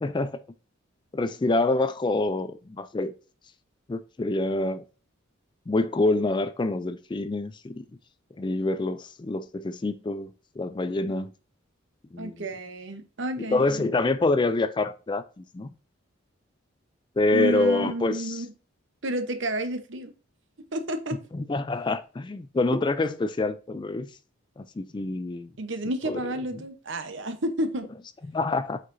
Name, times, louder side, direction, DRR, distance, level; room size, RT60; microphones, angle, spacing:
voice 1, 0.0-0.4 1.1-3.1 3.9-4.8 5.7-7.9 8.4-11.3 12.1-12.3 13.4-15.7 17.2-18.4 21.3-24.1 24.6-25.5 26.1-26.2 28.3-28.8, left 2 dB, 20° left, 0.3 m, -26 dB
voice 2, 12.2-13.9 17.3-18.5 19.0-20.1 20.7-21.2 25.6-27.9, right 1 dB, 60° right, 0.9 m, -31 dB
8.3 x 4.8 x 2.6 m
head